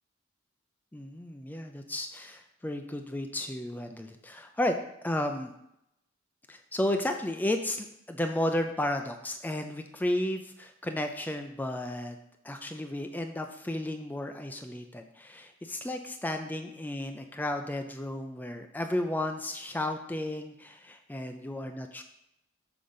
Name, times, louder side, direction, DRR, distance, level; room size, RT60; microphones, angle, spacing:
voice 1, 0.9-4.8 5.0-5.5 6.5-12.2 12.4-22.0, left 1 dB, 10° left, 5 dB, 0.3 m, -33 dB
6.8 x 3.8 x 5.4 m, 0.82 s
head